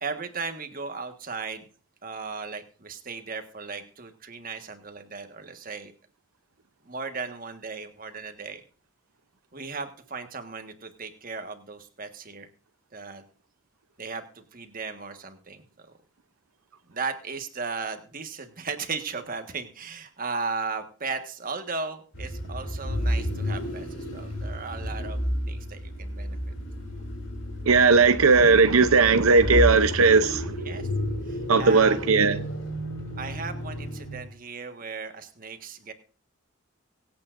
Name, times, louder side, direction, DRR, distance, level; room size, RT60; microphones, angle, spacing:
voice 1, 0.0-1.6 2.0-5.9 6.8-8.6 9.5-12.5 12.9-13.2 14.0-15.9 16.9-25.2 25.5-26.4 30.6-30.9 31.2-32.0 33.2-35.9, right 4 dB, 40° right, 1.5 m, -36 dB
sound 1, 22.1-34.3, equal, 60° left, 2.9 m, -31 dB
voice 2, 27.7-30.5 31.5-32.4, right 4 dB, 85° right, 0.7 m, -18 dB
23.5 x 8.6 x 2.6 m
head